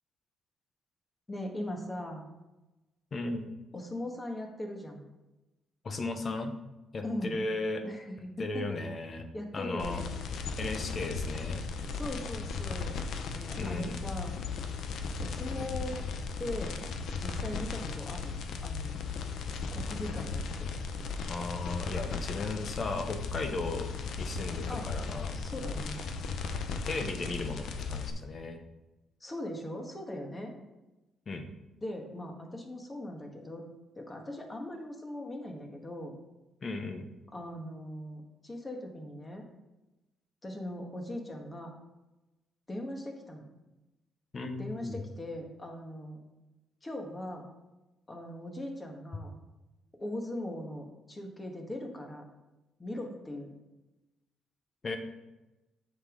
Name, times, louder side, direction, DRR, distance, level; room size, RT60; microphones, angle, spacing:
voice 1, 1.3-2.2 3.7-5.1 7.0-7.3 7.8-8.8 9.3-10.1 11.7-13.0 13.3-14.3 15.2-16.0 16.4-16.8 17.2-18.4 18.6-18.9 19.7-20.7 24.7-24.9 25.3-26.0 29.2-30.5 31.8-33.6 33.9-36.1 37.3-39.4 40.4-41.7 42.7-43.5 44.6-46.2 46.8-47.4 48.1-49.3 50.0-52.2 52.8-53.5, left 1 dB, 20° left, 2 dB, 1.6 m, -39 dB
voice 2, 3.1-3.5 5.8-6.6 6.9-7.8 8.4-9.2 9.5-10.0 10.6-11.6 13.6-14.0 21.3-23.9 24.2-25.3 26.8-28.6 31.3-31.5 36.6-37.1 44.3-45.0 54.8-55.0, left 2 dB, 40° left, 6 dB, 1.0 m, -36 dB
sound 1, 9.8-28.1, left 5 dB, 70° left, 0.7 m, -36 dB
7.9 x 5.4 x 3.9 m, 1.0 s
cardioid pair, 90°, 0 cm